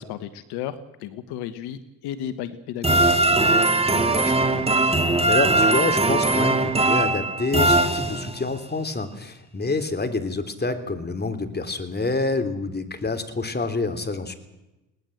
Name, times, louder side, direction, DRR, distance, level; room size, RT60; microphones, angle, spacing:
voice 1, 0.0-3.6, left 10 dB, 80° left, 12 dB, 1.3 m, -34 dB
sound 1, 2.8-8.6, right 2 dB, 15° right, 2.6 m, -20 dB
voice 2, 3.9-4.7 5.2-14.3, left 3 dB, 25° left, 8 dB, 3.5 m, -27 dB
21.5 x 19.0 x 7.9 m, 0.98 s
supercardioid pair, 65°, 39 cm